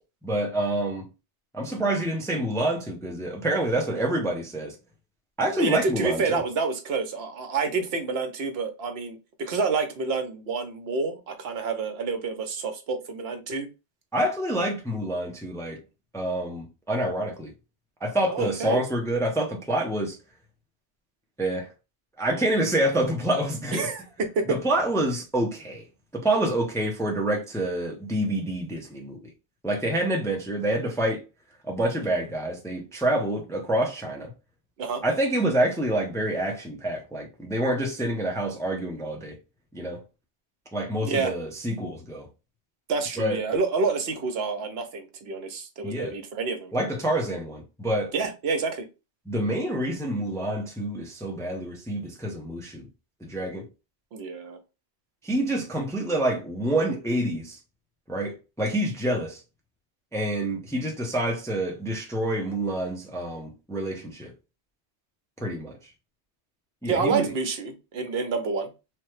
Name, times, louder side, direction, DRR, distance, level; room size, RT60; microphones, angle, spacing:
voice 1, 0.2-1.1 1.5-4.7 5.4-6.4 14.1-15.8 16.1-17.5 18.0-20.2 21.4-21.7 22.2-23.9 24.5-25.8 26.1-29.3 29.6-31.2 31.7-34.3 35.0-39.4 39.7-40.0 40.7-42.3 43.2-43.4 45.8-46.2 46.7-48.1 49.3-52.9 53.2-53.7 55.2-57.6 58.1-59.4 60.1-64.3 65.4-65.8 66.8-67.3, right 1 dB, 5° left, 0.4 m, -27 dB
voice 2, 5.6-13.7 18.3-18.8 23.7-24.6 34.8-35.0 41.0-41.3 42.9-46.7 48.1-48.9 54.1-54.6 66.8-68.7, right 4 dB, 70° right, 0.9 m, -28 dB
3.2 x 2.2 x 3.1 m
omnidirectional pair, 1.2 m